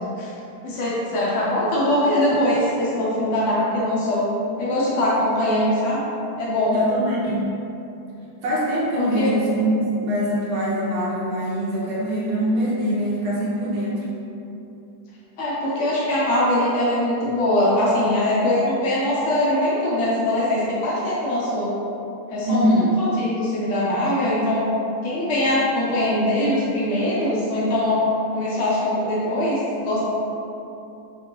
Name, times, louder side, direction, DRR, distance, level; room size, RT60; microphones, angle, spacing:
voice 1, 0.6-4.2 4.6-6.0 6.4-6.8 9.0-9.5 15.4-21.7 22.3-24.6 25.0-28.0 28.3-30.0, left 1 dB, 75° left, -7 dB, 0.6 m, -22 dB
voice 2, 6.7-7.6 8.4-14.0 22.5-23.0, right 1 dB, 75° right, -6 dB, 1.7 m, -23 dB
6.7 x 2.6 x 3.0 m, 2.8 s
omnidirectional pair, 2.4 m